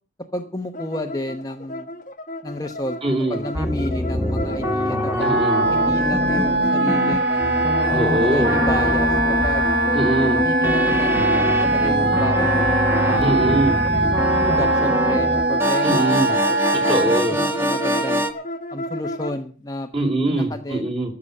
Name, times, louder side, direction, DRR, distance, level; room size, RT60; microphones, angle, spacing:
voice 1, 0.3-1.9 2.4-5.3 5.7-7.6 8.0-9.7 10.4-12.6 13.0-13.6 14.0-14.2 14.5-18.2 18.7-19.9 20.2-20.9, left 1 dB, 20° left, 5 dB, 1.0 m, -31 dB
sound 1, 0.7-19.4, left 1 dB, 45° left, 1.2 m, -32 dB
voice 2, 3.0-3.4 5.2-5.7 7.9-8.6 9.9-10.4 13.2-13.8 15.8-16.3 16.9-17.4 19.9-21.1, right 1 dB, 30° right, 3 dB, 3.7 m, -22 dB
sound 2, 3.5-18.3, equal, 15° right, 1.3 m, -24 dB
Wind instrument woodwind instrument, 5.2-17.2, right 2 dB, 65° right, 1.6 m, -22 dB
14.0 x 7.2 x 8.3 m, 0.41 s
head